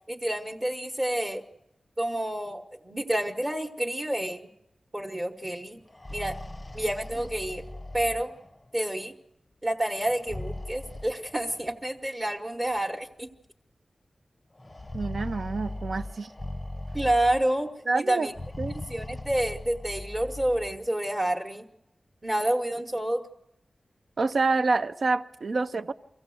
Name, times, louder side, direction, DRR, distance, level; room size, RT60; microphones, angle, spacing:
voice 1, 0.1-1.4 2.0-4.4 4.9-5.8 6.1-6.4 6.7-7.6 7.9-8.3 8.7-9.1 9.6-13.3 16.9-18.4 18.9-21.6 22.2-23.2, right 1 dB, 25° right, 1.1 m, -29 dB
sound 1, 5.8-8.7 10.1-11.7 12.7-12.8 13.2-13.3 14.6-17.7 18.3-20.9, left 2 dB, 15° left, 0.7 m, -39 dB
voice 2, 14.9-16.3 17.9-18.3 18.6-18.8 24.2-25.9, right 3 dB, 60° right, 0.7 m, -27 dB
24.5 x 15.5 x 7.8 m
wide cardioid pair, 120°, 0 cm